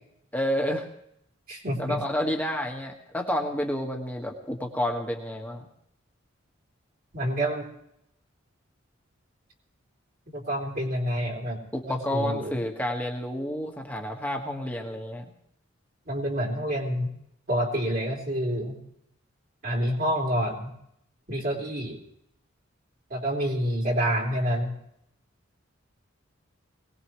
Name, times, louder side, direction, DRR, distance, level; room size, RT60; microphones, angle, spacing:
voice 1, 0.3-0.9 1.8-5.6 11.7-15.3, equal, 10° left, 1 dB, 1.7 m, -30 dB
voice 2, 1.5-2.0 7.1-7.7 10.3-11.6 11.9-12.6 16.1-17.1 17.5-18.8 19.6-20.7 21.3-22.0 23.1-24.7, equal, 45° right, -2 dB, 3.9 m, -28 dB
22.5 x 19.0 x 3.2 m, 0.74 s
head